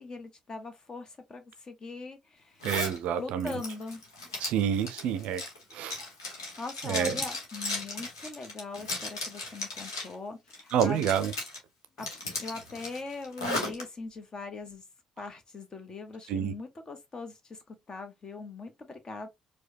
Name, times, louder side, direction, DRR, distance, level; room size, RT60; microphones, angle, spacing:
voice 1, 0.0-2.6 3.2-4.0 6.3-11.0 12.0-12.1 12.4-14.8 15.2-19.3, left 3 dB, 35° left, 1.0 m, -41 dB
Zipper (clothing), 2.6-3.0 3.4-10.1 10.5-11.6 12.0-13.8, left 2 dB, 80° left, 1.0 m, -36 dB
voice 2, 2.6-3.5 4.4-5.4 5.7-6.0 6.9-7.1 10.7-11.3 16.3-16.5, right 9 dB, 60° right, 0.4 m, -28 dB
4.7 x 2.2 x 2.7 m
figure-of-eight pair, 45°, 2 cm